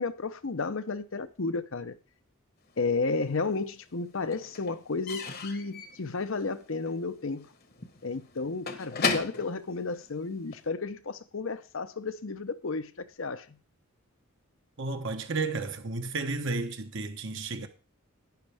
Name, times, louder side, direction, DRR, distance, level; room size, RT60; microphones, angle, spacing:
voice 1, 0.0-1.9 2.8-7.5 8.0-13.6, left 3 dB, 60° left, 0.7 m, -32 dB
Slam / Squeak / Wood, 2.8-3.6 3.9-10.7, left 5 dB, 45° left, 1.1 m, -36 dB
voice 2, 14.8-17.7, right 3 dB, 55° right, 1.0 m, -32 dB
11.5 x 10.0 x 3.5 m
head